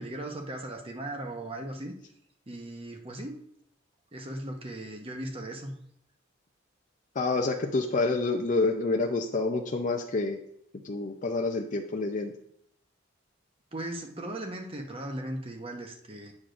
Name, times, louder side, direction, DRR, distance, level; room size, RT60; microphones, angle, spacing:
voice 1, 0.0-2.0 2.5-3.3 4.1-5.7 13.7-16.3, right 1 dB, 30° right, 3 dB, 0.9 m, -37 dB
voice 2, 7.2-10.4 10.8-12.3, left 3 dB, 40° left, 2 dB, 0.5 m, -28 dB
8.5 x 6.1 x 2.5 m, 0.71 s
head